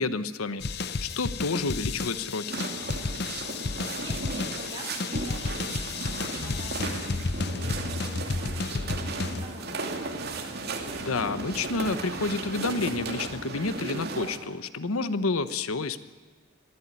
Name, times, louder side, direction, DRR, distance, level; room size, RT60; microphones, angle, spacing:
voice 1, 0.0-2.4 10.9-16.0, left 3 dB, 90° left, 13 dB, 1.0 m, -29 dB
sound 1, 0.6-9.5, left 3 dB, 50° left, 0.8 m, -32 dB
sound 2, 2.5-14.4, right 3 dB, 50° right, 2.5 m, -35 dB
voice 2, 3.8-10.4, right 1 dB, 20° right, -2 dB, 6.8 m, -45 dB
22.5 x 14.5 x 9.6 m, 1.4 s
head